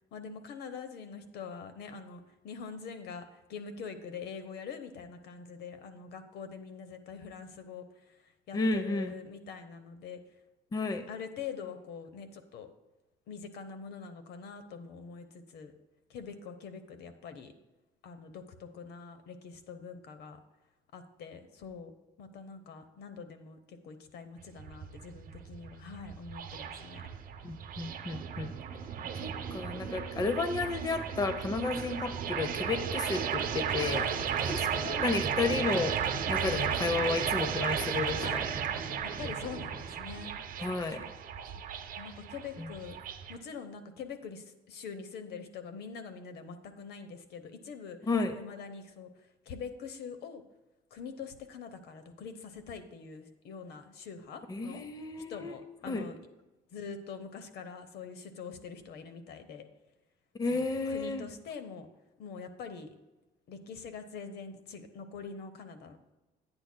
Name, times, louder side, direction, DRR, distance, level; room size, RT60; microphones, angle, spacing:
voice 1, 0.1-10.2 11.1-12.7 13.3-15.7 16.1-17.5 18.0-20.4 20.9-21.9 22.2-27.1 33.8-35.1 36.2-36.7 38.2-38.4 39.0-40.4 41.0-41.1 42.0-43.0 43.3-48.0 48.3-50.4 50.9-54.8 55.3-56.2 56.7-59.7 60.5-60.6 60.9-61.9 62.2-62.9 63.5-66.1, left 5 dB, 75° left, 9 dB, 0.9 m, -44 dB
voice 2, 8.5-9.1 10.7-11.0 27.4-28.5 29.2-34.0 35.0-36.0 36.3-38.2 40.6-41.1 42.6-42.7 48.1-48.3 54.5-55.6 55.9-56.1 60.4-61.3, left 3 dB, 20° left, 9 dB, 0.6 m, -32 dB
sound 1, 24.4-43.4, right 8 dB, 55° right, 0.8 m, -34 dB
11.5 x 8.8 x 2.2 m, 1.1 s
cardioid pair, 110°, 17 cm